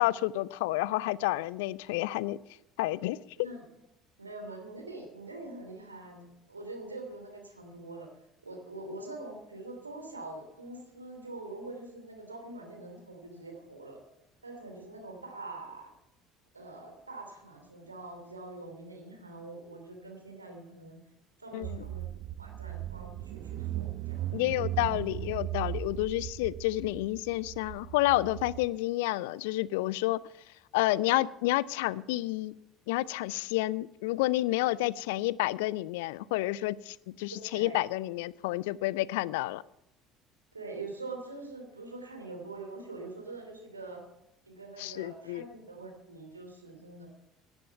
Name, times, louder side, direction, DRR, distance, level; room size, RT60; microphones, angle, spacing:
voice 1, 0.0-2.4 2.8-3.2 21.5-21.8 24.3-30.2 30.7-32.5 32.9-39.6 44.8-45.4, left 17 dB, 65° left, 22 dB, 0.4 m, -30 dB
voice 2, 3.4-3.7 4.2-8.1 8.4-14.0 14.4-15.9 16.5-21.0 21.4-22.1 22.4-24.3 37.5-37.7 40.5-44.0 44.4-47.1, right 2 dB, 85° right, 3 dB, 3.1 m, -44 dB
Car / Engine, 21.6-28.6, right 13 dB, 50° right, 0.6 m, -37 dB
17.0 x 10.5 x 5.7 m, 0.84 s
figure-of-eight pair, 60°, 0 cm